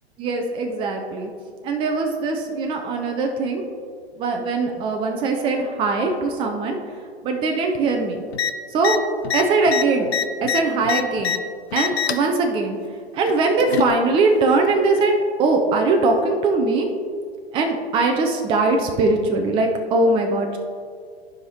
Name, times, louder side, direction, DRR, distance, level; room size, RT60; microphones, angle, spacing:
voice 1, 0.2-1.3 1.6-3.6 4.2-6.8 7.2-8.2 8.7-8.9 9.3-10.1 10.4-11.3 11.7-12.8 13.1-15.1 15.4-16.9 17.5-20.6, right 3 dB, 15° right, 3 dB, 0.5 m, -21 dB
sound 1, 8.3-8.5 8.8-9.0 9.2-11.4 11.7-12.3 13.3-13.9 15.0-15.1, left 8 dB, 75° left, 0.6 m, -24 dB
14.0 x 5.1 x 2.9 m, 2.1 s
figure-of-eight pair, 110°, 32 cm